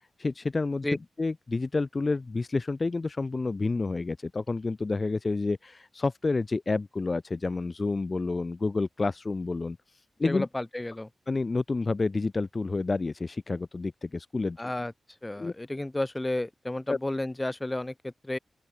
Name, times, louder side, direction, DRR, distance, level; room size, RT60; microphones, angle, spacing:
voice 1, 0.2-0.9 1.2-9.8 10.2-10.5 11.3-14.6 15.4-15.5 16.9-17.0, left 3 dB, 30° left, 3.5 m, -29 dB
voice 2, 10.2-11.1 14.6-14.9 15.2-18.4, left 1 dB, 15° left, 6.5 m, -32 dB
open air
wide cardioid pair, 130°, 0 cm